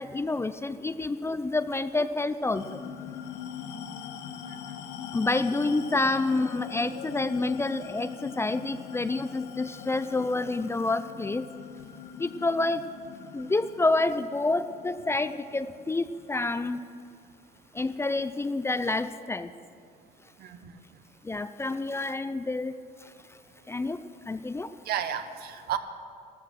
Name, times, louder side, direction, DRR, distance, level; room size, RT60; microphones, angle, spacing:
voice 1, 0.0-2.8 5.1-11.5 12.2-12.8 13.3-16.8 17.7-19.5 21.2-22.8 23.7-24.0 24.3-24.7, left 2 dB, 15° left, 12 dB, 0.5 m, -28 dB
sound 1, 2.5-17.4, left 8 dB, 80° left, 0.9 m, -42 dB
voice 2, 20.4-20.7 24.8-25.8, right 9 dB, 70° right, 9 dB, 1.1 m, -33 dB
14.0 x 13.5 x 6.4 m, 2.3 s
cardioid pair, 110°, 17 cm